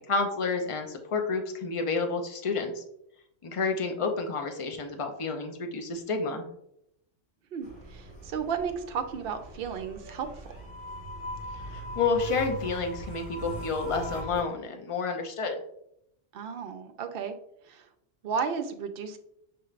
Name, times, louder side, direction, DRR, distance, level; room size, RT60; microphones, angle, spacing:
voice 1, 0.0-2.8 3.4-6.5 11.7-15.6, left 4 dB, 40° left, 4 dB, 0.4 m, -30 dB
voice 2, 7.5-10.3 16.3-17.3 17.7-17.8 18.2-19.2, right 6 dB, 60° right, 7 dB, 0.7 m, -33 dB
sound 1, 7.6-14.4, equal, 75° left, 2.0 m, -40 dB
6.1 x 3.2 x 2.4 m, 0.76 s
omnidirectional pair, 1.2 m